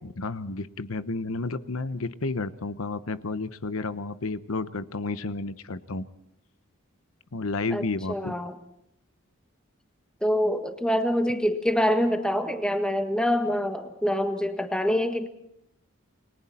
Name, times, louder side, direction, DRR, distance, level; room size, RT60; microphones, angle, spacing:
voice 1, 0.0-6.1 7.3-8.3, left 3 dB, 75° left, 13 dB, 0.9 m, -31 dB
voice 2, 7.7-8.5 10.2-15.3, equal, 5° left, 6 dB, 1.6 m, -25 dB
29.5 x 22.0 x 4.3 m, 0.78 s
head